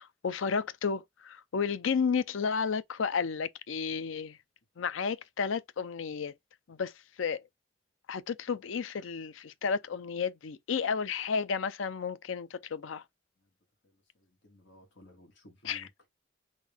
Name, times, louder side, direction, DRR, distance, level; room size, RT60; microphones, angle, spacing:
voice 1, 0.0-4.4 4.8-6.3 6.7-7.4 8.1-13.0 15.6-15.8, left 5 dB, 85° left, 0.5 m, -32 dB
voice 2, 13.8-16.1, left 1 dB, 65° left, 1.6 m, -57 dB
3.8 x 2.6 x 3.4 m
head